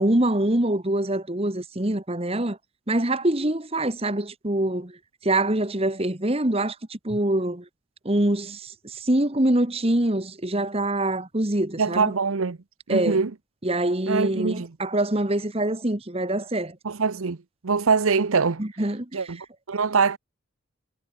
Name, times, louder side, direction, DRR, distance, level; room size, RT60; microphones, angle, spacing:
voice 1, 0.0-2.6 2.9-5.0 5.2-7.7 8.0-12.1 12.9-13.2 13.6-16.8 18.6-19.3, right 1 dB, 25° right, 1.5 m, -24 dB
voice 2, 11.8-12.6 12.9-13.3 14.1-14.7 16.8-17.4 17.6-18.6 19.1-19.4 19.7-20.2, right 5 dB, 75° right, 0.8 m, -23 dB
head